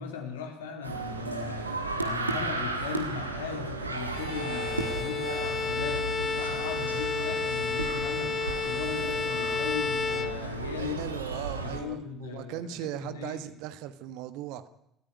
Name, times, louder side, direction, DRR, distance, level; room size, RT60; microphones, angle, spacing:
voice 1, 0.0-8.4 8.6-11.1 11.5-13.4, left 7 dB, 75° left, 3 dB, 3.4 m, -38 dB
sound 1, 0.8-11.8, right 3 dB, 90° right, 1.7 m, -34 dB
Bowed string instrument, 4.1-10.9, left 5 dB, 30° left, 1.0 m, -32 dB
voice 2, 10.8-14.7, right 11 dB, 60° right, 12 dB, 1.4 m, -38 dB
20.5 x 14.0 x 9.5 m, 0.80 s
figure-of-eight pair, 55°, 0 cm